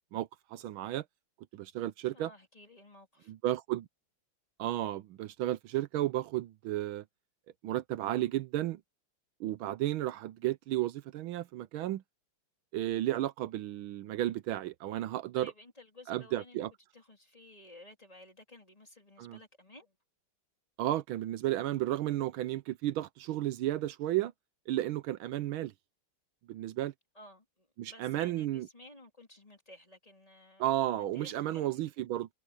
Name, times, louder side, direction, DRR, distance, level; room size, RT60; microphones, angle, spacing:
voice 1, 0.1-1.0 1.5-2.3 3.3-3.9 4.6-7.0 7.6-8.8 9.4-12.0 12.7-15.5 16.1-16.7 19.2-19.4 20.8-24.3 24.7-25.7 26.5-26.9 27.8-28.7 30.6-32.3, right 14 dB, 80° right, 1.5 m, -33 dB
voice 2, 2.1-3.3 15.3-16.6 16.9-20.0 27.1-32.1, left 2 dB, 15° left, 3.7 m, -55 dB
omnidirectional pair, 2.3 m